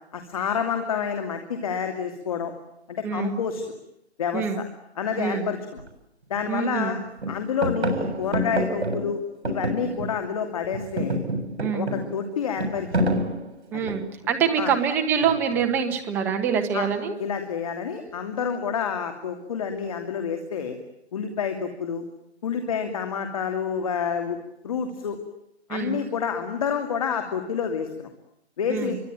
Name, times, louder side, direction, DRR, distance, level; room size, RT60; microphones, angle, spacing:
voice 1, 0.1-2.5 2.9-3.6 4.2-4.5 5.0-5.8 6.3-7.0 7.3-11.2 11.7-13.0 13.7-13.9 14.6-14.7 16.7-16.9 17.2-20.8 21.1-22.0 22.4-24.4 24.6-25.2 25.7-28.1 28.6-28.9, left 7 dB, 30° left, 6 dB, 2.8 m, -28 dB
voice 2, 3.0-3.4 4.3-4.6 5.2-5.5 6.5-7.0 11.6-11.9 13.7-17.2 25.7-26.0 28.7-29.0, right 7 dB, 5° right, 5 dB, 1.3 m, -25 dB
sound 1, 5.8-5.9 6.3-6.9 7.2-10.4 10.6-14.3 15.2-15.7, right 1 dB, 75° right, 7.5 m, -28 dB
27.0 x 24.0 x 9.1 m, 0.79 s
hypercardioid pair, 170°, 33 cm